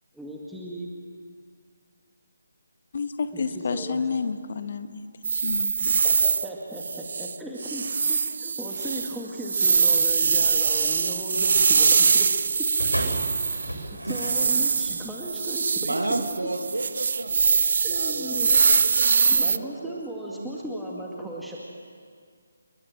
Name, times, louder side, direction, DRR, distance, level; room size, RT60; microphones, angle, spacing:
voice 1, 0.1-0.9 3.3-4.1 6.0-12.7 14.0-15.9 17.8-18.5 19.3-21.6, right 1 dB, ahead, -5 dB, 2.2 m, -36 dB
voice 2, 2.9-6.0, left 5 dB, 40° left, 9 dB, 1.6 m, -30 dB
sound 1, 5.2-6.5 6.8-7.4 7.6-13.8 14.1-19.6, right 5 dB, 45° right, 0.7 m, -23 dB
sound 2, 12.8-15.0 15.8-15.9, right 1 dB, 85° right, 7.8 m, -32 dB
voice 3, 15.8-17.6 17.9-20.0 20.3-20.6 21.1-21.3, right 2 dB, 70° right, 6 dB, 2.1 m, -33 dB
29.0 x 22.0 x 7.6 m, 2.1 s
figure-of-eight pair, 150°, 0 cm